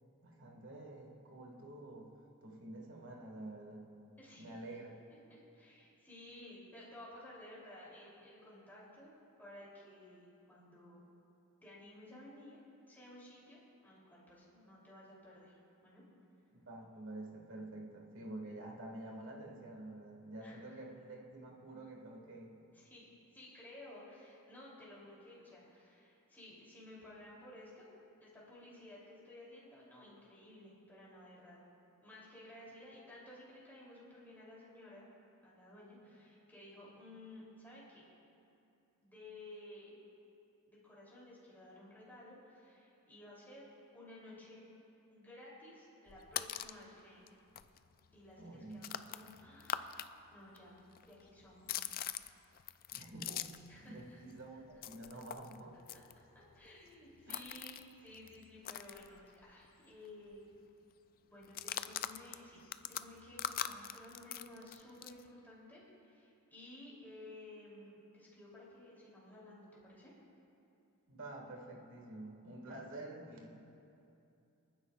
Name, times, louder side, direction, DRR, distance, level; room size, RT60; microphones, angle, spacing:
voice 1, 0.2-2.1 2.4-3.8 4.3-4.9 16.5-22.5 48.4-48.9 52.9-55.7 57.3-57.4 71.1-73.6, right 2 dB, 60° right, 0 dB, 1.9 m, -49 dB
voice 2, 4.2-4.6 5.3-9.1 9.4-11.0 11.6-12.6 12.9-15.5 15.8-16.0 20.4-20.8 22.7-31.6 32.0-35.1 35.4-38.0 39.0-40.0 40.7-43.7 43.9-44.6 45.1-47.3 48.1-51.9 53.7-54.2 55.9-56.0 56.3-60.4 61.3-70.1 72.7-72.8, left 1 dB, 10° left, -7 dB, 3.0 m, -55 dB
sound 1, 46.1-46.8 47.3-47.4 47.5-50.1 50.3-53.7 54.0-59.7 59.9-60.1 60.3-60.7 61.4-65.2, left 11 dB, 40° left, 0.3 m, -43 dB
29.5 x 10.0 x 2.4 m, 2.7 s
head